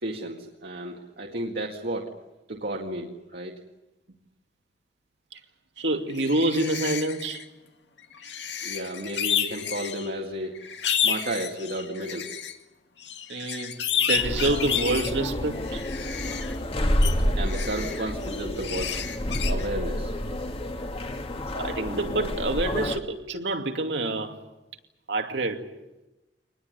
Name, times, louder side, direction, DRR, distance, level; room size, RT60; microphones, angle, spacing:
voice 1, 0.0-2.1 2.5-3.6 8.6-10.6 11.0-12.4 17.4-19.0 19.5-20.1, right 1 dB, 65° right, 2.1 m, -33 dB
voice 2, 5.8-7.4 13.3-13.8 14.1-15.8 21.5-24.4 25.1-25.6, right 2 dB, 85° right, 2.5 m, -27 dB
sound 1, 6.1-7.4 8.1-10.1 10.5-12.5 13.0-15.1 15.6-16.6 17.0-17.2 17.4-19.7, left 8 dB, 80° left, 2.2 m, -30 dB
sound 2, 14.1-23.0, equal, 35° left, 1.8 m, -29 dB
24.5 x 20.0 x 9.8 m
head